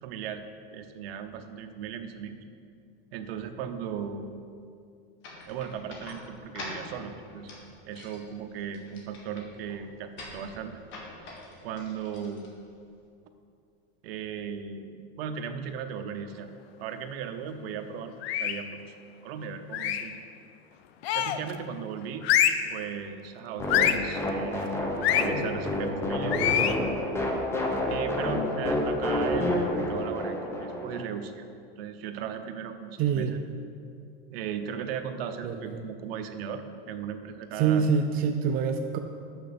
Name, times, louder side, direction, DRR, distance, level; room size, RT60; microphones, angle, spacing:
voice 1, 0.0-0.5 0.7-2.4 3.1-4.3 5.5-7.5 7.9-10.8 11.6-12.4 14.0-16.5 16.8-18.7 19.2-20.2 21.1-22.3 22.7-24.7 25.1-26.8 27.9-31.4 31.8-33.4 34.3-37.9, right 7 dB, 75° right, 7 dB, 0.8 m, -37 dB
sound 1, 5.2-13.0, left 2 dB, 40° left, 1.7 m, -45 dB
sound 2, 18.2-18.7 19.7-20.2 21.0-21.5 22.2-22.7 23.7-24.1 25.0-25.3 26.3-26.8, left 10 dB, 90° left, 0.6 m, -25 dB
sound 3, 23.6-31.0, left 1 dB, 10° left, 0.8 m, -29 dB
voice 2, 33.0-33.3 35.4-35.8 37.6-39.0, right 6 dB, 30° right, 6 dB, 0.4 m, -25 dB
6.5 x 6.2 x 6.9 m, 2.4 s
supercardioid pair, 150°, 30 cm